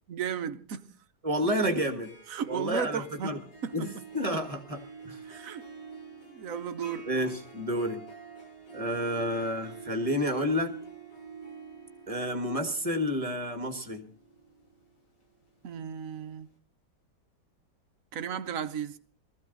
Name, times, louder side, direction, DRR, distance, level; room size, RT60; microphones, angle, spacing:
voice 1, 0.1-0.9 1.8-1.9 2.3-3.9 4.3-4.4 5.2-5.6 6.3-7.1 15.6-16.5 18.1-19.0, right 7 dB, 55° right, 1.2 m, -35 dB
voice 2, 1.2-2.1 2.5-3.4 3.7-4.8 5.0-5.2 7.1-8.0 8.7-10.7 12.1-14.1, equal, 20° right, 1.5 m, -30 dB
Harp, 1.8-15.8, right 5 dB, 80° left, 3.7 m, -48 dB
19.0 x 14.5 x 3.9 m
omnidirectional pair, 1.9 m